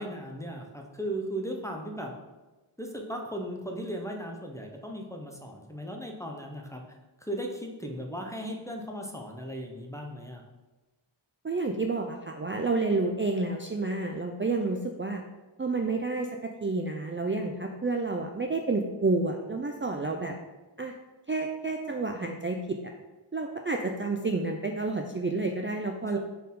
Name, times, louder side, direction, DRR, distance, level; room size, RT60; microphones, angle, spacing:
voice 1, 0.0-2.1 2.8-6.8 7.2-10.4 26.1-26.2, equal, 5° left, 2 dB, 0.8 m, -37 dB
voice 2, 11.4-15.2 15.6-20.3 20.8-20.9 21.3-22.8 23.3-26.2, right 3 dB, 25° right, 3 dB, 0.4 m, -30 dB
4.2 x 4.1 x 5.4 m, 1.2 s
wide cardioid pair, 45°, 50 cm